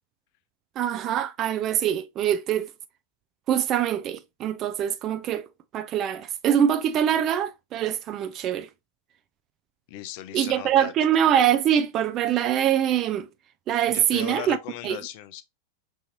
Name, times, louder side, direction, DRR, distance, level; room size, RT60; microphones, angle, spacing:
voice 1, 0.8-2.7 3.5-5.5 5.7-8.7 10.3-13.3 13.7-14.6 14.8-15.0, right 9 dB, 35° right, 0.3 m, -24 dB
voice 2, 9.9-10.9 13.9-15.4, left 12 dB, 45° left, 0.5 m, -37 dB
5.6 x 2.6 x 2.7 m
figure-of-eight pair, 90°, 0 cm